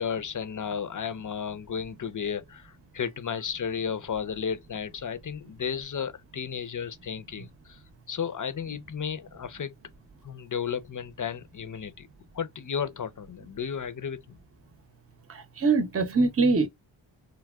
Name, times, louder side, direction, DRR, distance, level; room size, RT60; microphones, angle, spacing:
voice 1, 0.0-7.8 8.1-9.7 10.2-12.1 12.3-14.4, left 7 dB, 40° left, 0.6 m, -33 dB
voice 2, 15.3-16.7, right 3 dB, 30° right, 0.7 m, -23 dB
3.3 x 2.2 x 2.3 m
cardioid pair, 55°, 48 cm